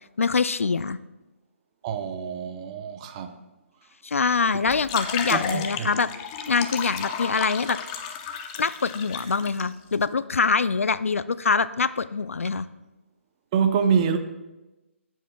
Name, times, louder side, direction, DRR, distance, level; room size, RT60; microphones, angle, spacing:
voice 1, 0.2-1.0 4.0-6.1 6.5-7.8 8.6-12.7, left 5 dB, 80° left, 16 dB, 0.4 m, -24 dB
voice 2, 1.8-3.3 5.3-5.9 13.5-14.2, right 7 dB, 30° right, 7 dB, 0.7 m, -25 dB
sound 1, 4.7-9.6, left 7 dB, 25° left, 0.6 m, -32 dB
16.5 x 7.3 x 2.3 m, 1.1 s
figure-of-eight pair, 150°, 7 cm